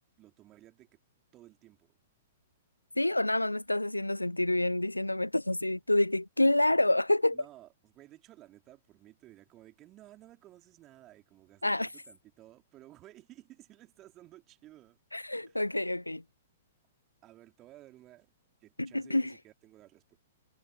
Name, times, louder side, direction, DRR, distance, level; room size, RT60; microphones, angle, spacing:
voice 1, 0.2-1.0 1.3-2.0 7.3-15.0 15.5-15.6 17.2-18.3 18.6-20.2, right 15 dB, 25° right, 3.8 m, -55 dB
voice 2, 3.0-7.4 11.6-11.9 15.1-16.2 18.8-19.3, left 1 dB, 85° left, 0.3 m, -28 dB
figure-of-eight pair, 110°, 0 cm